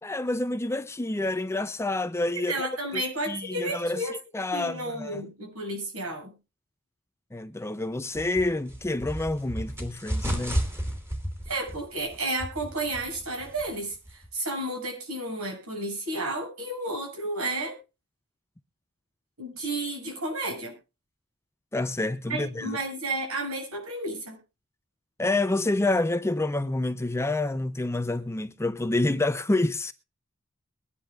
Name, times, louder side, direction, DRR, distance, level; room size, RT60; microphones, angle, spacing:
voice 1, 0.0-2.7 3.3-5.2 7.3-10.7 21.7-22.8 25.2-29.9, left 2 dB, 10° left, 0.6 m, -28 dB
voice 2, 2.5-4.1 4.5-6.3 11.5-17.7 19.4-20.8 22.3-24.4, right 2 dB, 90° right, 7.5 m, -32 dB
sound 1, 8.1-14.3, equal, 10° right, 3.1 m, -34 dB
22.5 x 10.5 x 2.5 m
head